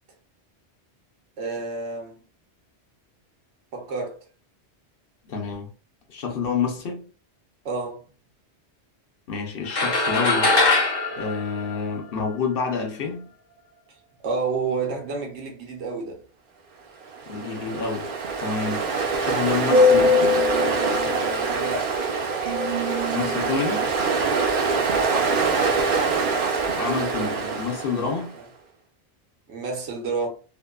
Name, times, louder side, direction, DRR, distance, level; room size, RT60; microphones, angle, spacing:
voice 1, 1.4-2.2 3.7-4.2 7.6-8.0 14.2-16.2 21.5-21.9 24.9-25.8 28.3-28.4 29.5-30.3, right 4 dB, 80° right, 1.1 m, -30 dB
voice 2, 5.3-5.7 6.1-7.1 9.3-10.5 11.2-13.3 17.3-18.1 18.4-18.8 19.2-20.5 23.1-23.9 26.8-28.3, left 5 dB, 60° left, 0.8 m, -28 dB
sound 1, 9.7-12.3, left 3 dB, 45° left, 0.3 m, -22 dB
Ocean, 17.1-28.2, right 1 dB, 60° right, 0.7 m, -23 dB
2.7 x 2.2 x 2.3 m
omnidirectional pair, 1.1 m